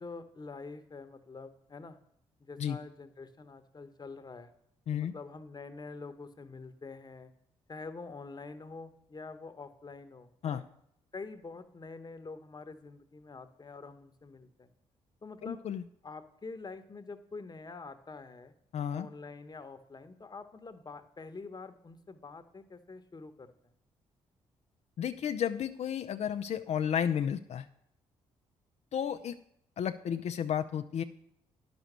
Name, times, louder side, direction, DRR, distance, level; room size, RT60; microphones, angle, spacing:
voice 1, 0.0-2.0 2.4-4.5 4.9-7.3 7.7-10.6 11.1-14.7 15.2-15.7 16.0-18.5 18.9-23.5, left 4 dB, 30° left, 9 dB, 1.1 m, -46 dB
voice 2, 15.4-15.8 18.7-19.1 25.0-27.7 28.9-29.4 29.8-31.0, left 8 dB, 60° left, 9 dB, 0.5 m, -32 dB
10.0 x 6.1 x 6.7 m, 0.71 s
supercardioid pair, 60°, 13 cm